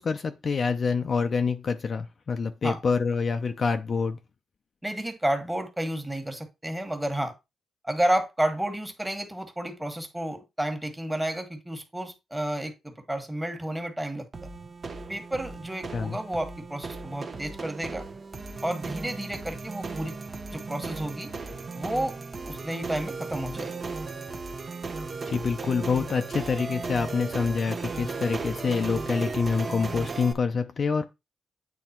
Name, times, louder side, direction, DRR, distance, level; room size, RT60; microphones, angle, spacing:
voice 1, 0.0-4.2 15.9-16.2 25.3-31.0, left 5 dB, 45° left, 0.6 m, -26 dB
voice 2, 4.8-7.3 7.8-14.3 15.1-18.1 18.6-20.2 20.5-21.3 21.7-22.1 22.4-23.7, right 1 dB, 10° right, 1.6 m, -31 dB
sound 1, 14.3-30.3, right 4 dB, 40° right, 1.0 m, -36 dB
8.5 x 3.4 x 4.4 m
cardioid pair, 100°, 0 cm